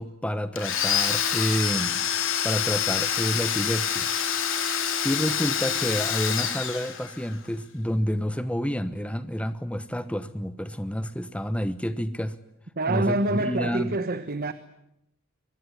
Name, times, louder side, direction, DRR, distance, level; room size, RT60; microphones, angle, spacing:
voice 1, 0.0-2.0 2.4-4.1 4.7-12.4 12.9-13.9, equal, 5° left, 1.0 m, -29 dB
Domestic sounds home sounds, 0.6-7.3, left 8 dB, 60° left, 3.7 m, -27 dB
voice 2, 12.8-14.5, right 2 dB, 45° right, 1.2 m, -26 dB
24.0 x 21.5 x 9.9 m
head